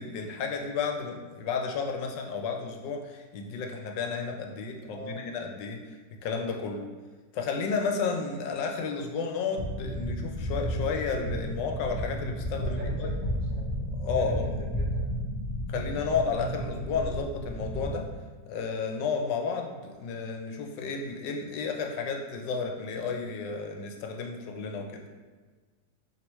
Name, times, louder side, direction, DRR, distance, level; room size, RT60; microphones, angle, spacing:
voice 1, 0.0-5.8 6.2-6.8 7.3-13.1 14.0-14.5 15.7-18.0 18.5-25.0, left 5 dB, 80° left, 3 dB, 1.2 m, -32 dB
voice 2, 4.9-5.2 12.4-13.6 14.1-15.2, right 1 dB, 60° right, -5 dB, 1.1 m, -42 dB
sound 1, 9.6-17.9, equal, 45° left, 0.6 m, -32 dB
4.5 x 3.3 x 3.0 m, 1.4 s
omnidirectional pair, 2.0 m